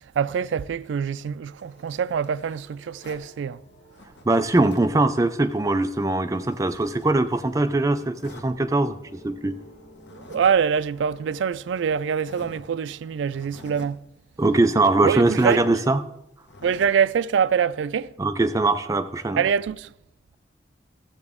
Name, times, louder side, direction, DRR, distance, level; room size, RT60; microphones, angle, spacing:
voice 1, 0.2-3.6 10.1-14.0 15.0-15.6 16.6-18.1 19.4-19.9, right 7 dB, 90° right, 0.3 m, -24 dB
sound 1, 0.7-13.2, right 1 dB, 50° left, 3.6 m, -50 dB
Zipper (clothing), 1.6-3.3 3.9-5.0 5.4-7.6 8.2-8.5 9.9-10.5 10.8-10.9 11.6-11.7 12.2-12.7 13.2-14.0 15.3-15.7 16.4-17.0, left 2 dB, 80° left, 1.2 m, -47 dB
voice 2, 4.3-9.6 14.4-16.0 18.2-19.4, right 2 dB, 20° right, 0.4 m, -21 dB
14.0 x 7.8 x 3.6 m
head